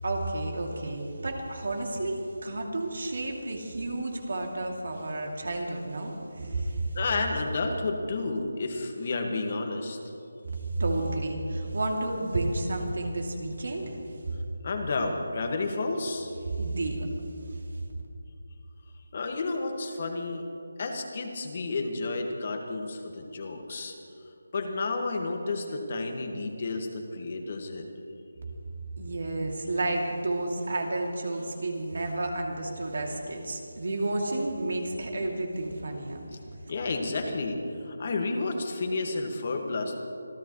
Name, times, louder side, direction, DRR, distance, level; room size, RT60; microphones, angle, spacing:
voice 1, 0.0-7.0 10.8-14.0 14.2-14.4 16.5-17.1 17.5-17.6 29.0-36.2, right 2 dB, 65° right, 1 dB, 2.8 m, -31 dB
voice 2, 6.4-6.7 7.0-10.0 14.6-16.3 19.1-20.5 20.8-23.9 24.5-27.9 36.7-40.0, left 3 dB, 40° left, 3 dB, 1.9 m, -31 dB
25.5 x 14.5 x 3.2 m, 2.7 s
figure-of-eight pair, 170°, 0 cm